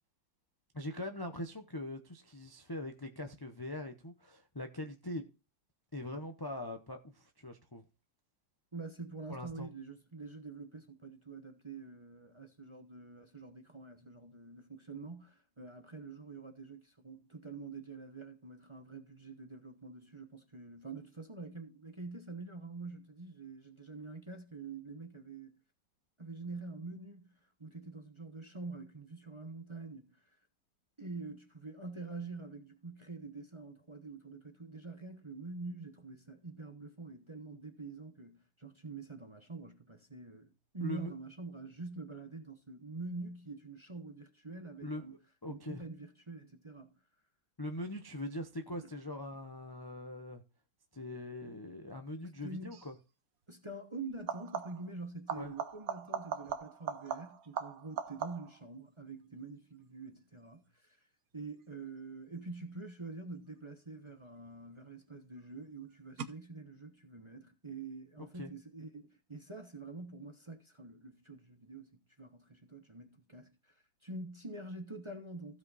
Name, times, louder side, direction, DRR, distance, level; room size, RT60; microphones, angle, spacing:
voice 1, 0.7-5.2 5.9-7.8 9.3-9.7 40.8-41.1 44.8-45.8 47.6-50.4 50.9-52.9 55.3-55.5 68.3-68.5, left 1 dB, 30° left, 0.4 m, -42 dB
voice 2, 8.7-25.6 26.2-30.2 31.0-45.2 45.5-47.0 48.7-48.9 52.2-52.8 53.5-61.0 61.3-75.6, right 3 dB, 20° right, 0.8 m, -46 dB
sound 1, 52.7-53.0 54.1-54.9 55.3-58.7 64.1-64.7 66.2-66.3, right 7 dB, 55° right, 1.3 m, -40 dB
15.5 x 5.4 x 4.1 m
omnidirectional pair, 2.1 m